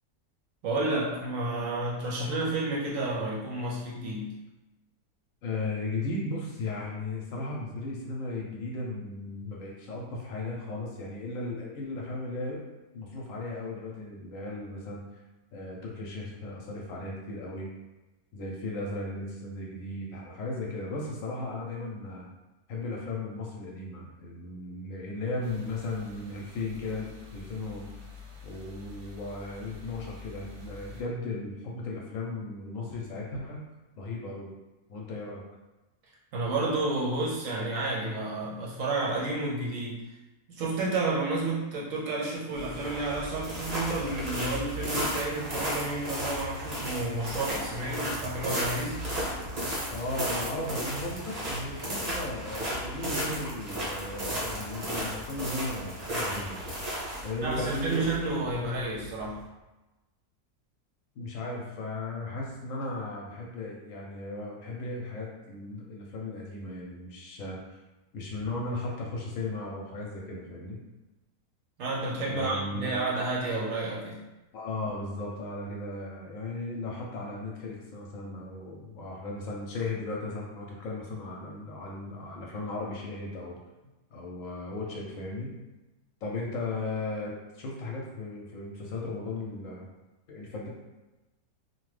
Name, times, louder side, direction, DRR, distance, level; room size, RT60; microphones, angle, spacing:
voice 1, 0.6-4.3 36.3-40.0 40.5-49.0 56.9-57.1 57.4-59.4 71.8-74.2, right 2 dB, 65° right, -4 dB, 0.9 m, -31 dB
voice 2, 5.4-12.6 12.9-15.0 15.5-17.7 18.3-22.3 22.7-27.9 28.4-33.6 34.0-34.5 34.9-35.4 49.9-56.6 57.2-58.2 61.1-67.6 68.1-70.8 72.3-73.0 74.5-83.6 84.1-85.5 86.2-89.9 90.3-90.7, left 2 dB, 70° left, -2 dB, 0.9 m, -36 dB
sound 1, 25.4-31.0, left 4 dB, 90° right, 1.2 m, -47 dB
sound 2, 42.5-59.4, equal, 40° right, 0.6 m, -34 dB
2.9 x 2.2 x 3.1 m, 1.1 s
omnidirectional pair, 1.6 m